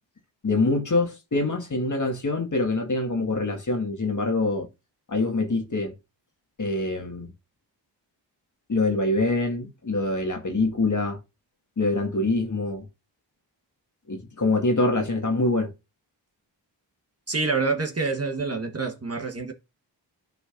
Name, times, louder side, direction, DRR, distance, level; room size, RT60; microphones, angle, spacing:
voice 1, 0.4-4.7 5.1-5.9 6.6-7.3 8.7-11.2 11.8-12.9 14.1-15.7, left 2 dB, 40° left, 1.8 m, -25 dB
voice 2, 17.3-19.5, right 4 dB, 30° right, 1.3 m, -27 dB
12.0 x 4.0 x 2.5 m
cardioid pair, 50°, 46 cm